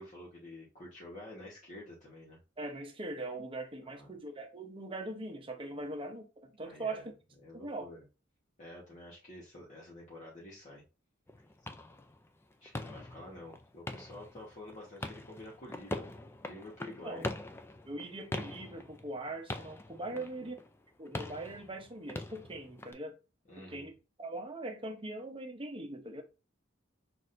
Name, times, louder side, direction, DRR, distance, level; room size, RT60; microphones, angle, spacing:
voice 1, 0.0-2.4 3.8-4.2 5.7-5.9 6.6-7.0 7.4-8.0 8.6-10.8 12.6-16.0 16.4-17.3 20.0-20.5 23.5-23.9, left 1 dB, 40° left, 1.2 m, -49 dB
voice 2, 2.6-7.1 7.5-7.9 16.9-17.2 17.9-20.6 21.0-23.2 23.6-26.2, right 2 dB, 25° right, 0.8 m, -41 dB
sound 1, 11.3-22.9, left 2 dB, 10° left, 0.3 m, -43 dB
6.1 x 2.5 x 2.6 m
head